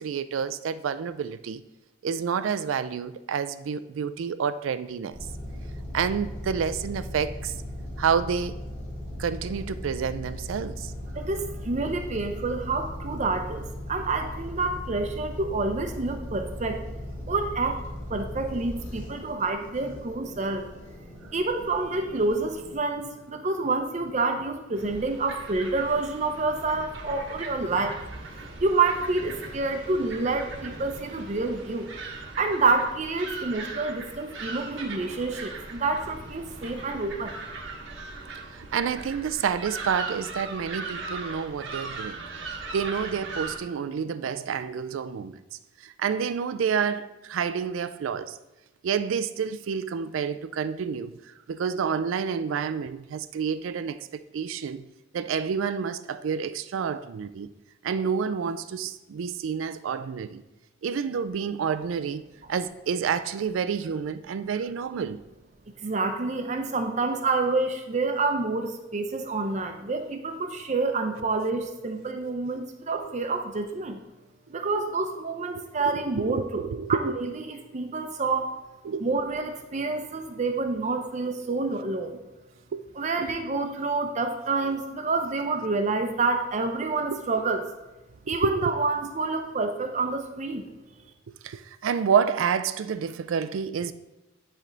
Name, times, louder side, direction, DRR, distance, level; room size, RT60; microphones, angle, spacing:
voice 1, 0.0-1.6 2.0-5.2 5.9-7.5 8.0-8.6 9.2-10.9 38.5-42.2 42.7-45.4 45.8-48.4 48.8-51.1 51.5-54.8 55.1-57.5 57.8-60.4 60.8-62.2 62.5-65.2 75.6-77.1 78.8-79.0 82.7-82.8 83.2-83.3 87.1-87.2 88.3-88.7 91.4-93.9, right 6 dB, 90° right, 0.4 m, -29 dB
sound 1, 5.1-22.8, left 1 dB, 40° left, 2.5 m, -38 dB
voice 2, 11.1-16.8 17.3-17.8 18.1-20.6 21.3-28.0 28.6-31.9 32.4-37.4 65.8-74.0 74.5-76.6 76.9-78.5 79.0-82.2 83.0-87.7 88.3-90.7, right 3 dB, 35° right, 0.6 m, -28 dB
sound 2, 24.7-43.6, right 3 dB, 70° right, 1.1 m, -39 dB
9.9 x 3.4 x 3.9 m
head